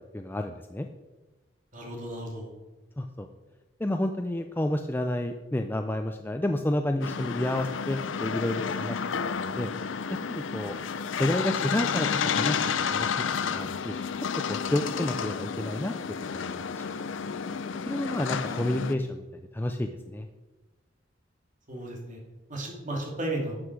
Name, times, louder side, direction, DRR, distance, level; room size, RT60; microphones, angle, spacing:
voice 1, 0.1-0.9 3.0-3.3 3.8-9.0 9.3-9.7 10.1-10.8 11.2-12.6 12.9-13.1 13.4-14.0 14.5-15.9 16.4-16.9 17.9-19.3 19.5-20.3, left 1 dB, 10° left, 5 dB, 0.4 m, -30 dB
voice 2, 1.7-2.5 18.4-18.7 21.7-22.2 22.5-23.6, right 1 dB, 45° right, -1 dB, 2.8 m, -34 dB
sound 1, 7.0-18.9, left 6 dB, 85° left, 0.6 m, -31 dB
12.0 x 8.1 x 4.8 m, 1.2 s
head